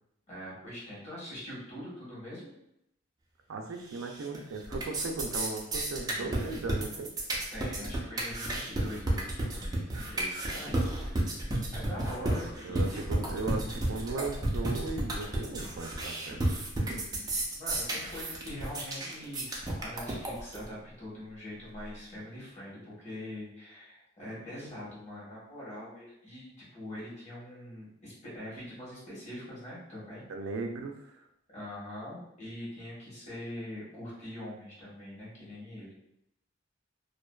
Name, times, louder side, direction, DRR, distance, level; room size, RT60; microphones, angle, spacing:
voice 1, 0.3-2.5 7.5-13.0 16.8-30.2 31.5-35.9, left 1 dB, 35° left, -8 dB, 1.1 m, -43 dB
voice 2, 3.5-7.1 12.2-12.3 12.6-16.4 30.3-31.2, right 3 dB, 85° right, 4 dB, 0.4 m, -37 dB
sound 1, 3.9-4.4 4.6-20.6, right 1 dB, 20° right, 0.4 m, -32 dB
2.5 x 2.2 x 2.2 m, 0.81 s
head